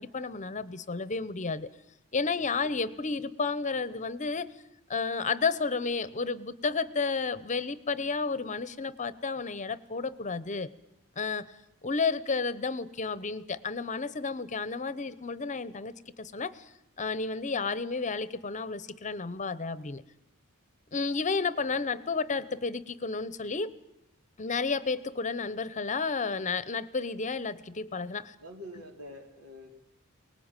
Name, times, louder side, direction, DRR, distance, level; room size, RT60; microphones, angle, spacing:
voice 1, 0.0-1.7 2.1-4.5 4.9-10.7 11.2-11.5 11.8-16.7 17.0-20.0 20.9-23.7 24.4-28.3, left 4 dB, 35° left, 16 dB, 0.8 m, -32 dB
voice 2, 2.4-2.8 21.5-21.8 28.4-29.8, left 1 dB, 85° right, 3 dB, 4.1 m, -47 dB
24.0 x 19.5 x 9.0 m, 0.84 s
head